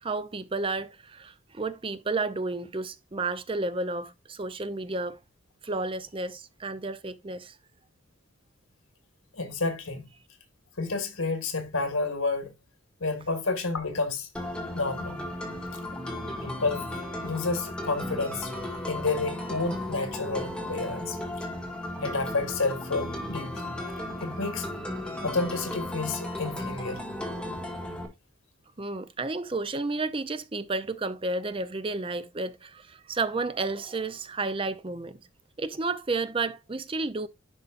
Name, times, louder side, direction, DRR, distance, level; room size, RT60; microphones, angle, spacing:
voice 1, 0.0-5.2 5.6-7.6 28.8-35.2 35.6-37.3, right 3 dB, 25° right, 0.5 m, -31 dB
voice 2, 9.3-10.1 10.8-12.5 13.0-14.3 14.7-15.2 16.4-16.9 17.2-18.5 18.9-21.5 22.0-23.7 24.2-24.7 25.2-27.0, left 3 dB, 85° left, 1.8 m, -30 dB
sound 1, 14.4-28.1, left 1 dB, 5° left, 1.9 m, -35 dB
11.0 x 5.5 x 2.5 m
head